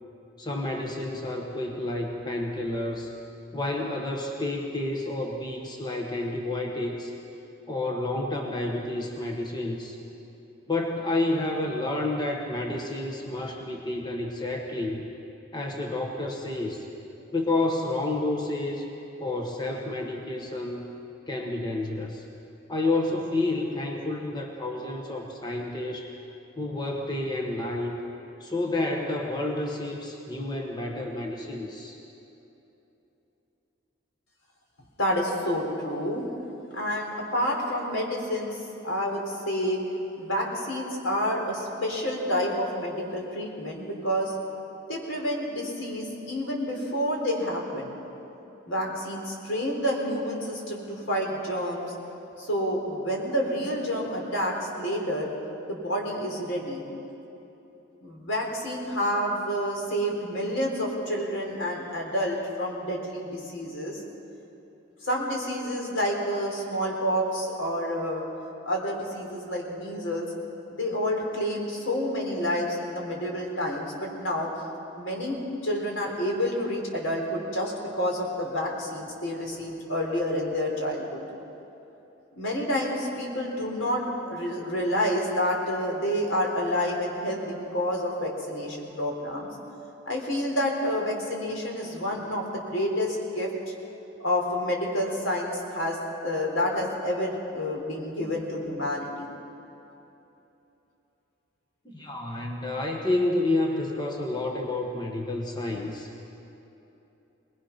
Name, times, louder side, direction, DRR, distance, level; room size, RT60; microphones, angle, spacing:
voice 1, 0.4-3.1 3.5-7.1 7.7-10.0 10.7-15.1 15.5-16.9 17.3-18.9 19.2-20.8 21.3-22.2 22.7-26.1 26.6-28.0 28.4-32.0 101.8-106.1, left 2 dB, 20° left, 1 dB, 1.4 m, -30 dB
voice 2, 35.0-36.2 36.7-38.6 38.8-39.8 40.2-44.3 44.9-47.9 48.7-51.8 52.4-55.3 55.7-56.8 58.0-64.0 65.0-68.2 68.6-70.3 70.7-74.5 74.9-81.2 82.4-89.5 90.1-92.4 92.7-93.5 94.2-96.0 96.2-99.3, equal, 80° left, 0 dB, 3.9 m, -29 dB
21.5 x 20.5 x 5.8 m, 3.0 s
head